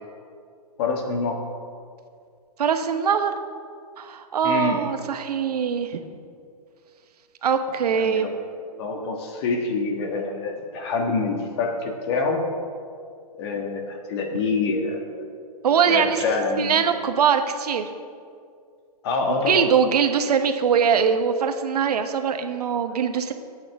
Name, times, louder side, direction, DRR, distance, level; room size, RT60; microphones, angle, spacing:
voice 1, 0.8-1.4 4.4-4.8 7.9-8.4 8.8-12.4 13.3-15.3 15.9-16.8 19.0-19.7, left 4 dB, 40° left, 3 dB, 1.8 m, -26 dB
voice 2, 2.6-3.3 4.0-6.0 7.4-8.3 15.6-16.2 16.6-17.9 19.5-23.3, right 7 dB, 75° right, 7 dB, 1.2 m, -22 dB
25.0 x 8.9 x 3.6 m, 2.3 s
hypercardioid pair, 155°, 20 cm